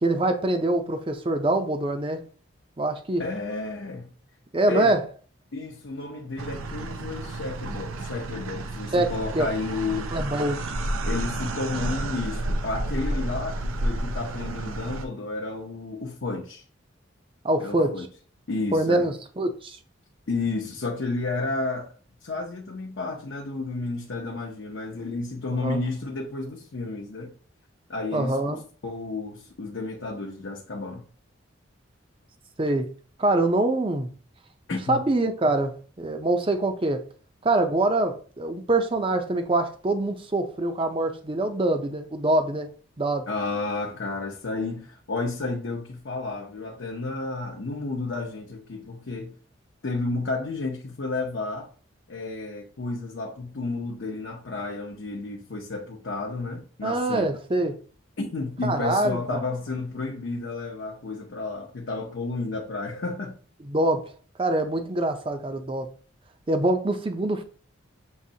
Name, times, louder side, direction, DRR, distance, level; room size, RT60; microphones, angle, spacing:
voice 1, 0.0-2.2 2.8-3.2 4.5-5.0 8.9-9.5 10.1-10.6 17.4-18.1 18.7-19.8 25.5-25.8 28.1-28.6 32.6-32.9 33.2-34.1 34.9-37.0 37.4-42.7 43.0-43.3 56.8-57.8 58.6-59.4 63.6-64.1 64.4-65.9 66.5-67.4, right 2 dB, 25° right, 0.5 m, -24 dB
voice 2, 3.2-4.1 4.7-4.9 5.5-10.1 11.1-16.6 17.6-18.1 18.5-19.1 20.3-21.9 22.2-27.3 27.9-31.0 34.7-35.0 43.3-49.4 49.8-51.7 52.1-57.3 58.2-63.4, left 3 dB, 65° left, 0.7 m, -31 dB
sound 1, 6.4-15.1, right 1 dB, 90° right, 0.6 m, -31 dB
6.4 x 3.0 x 2.8 m
head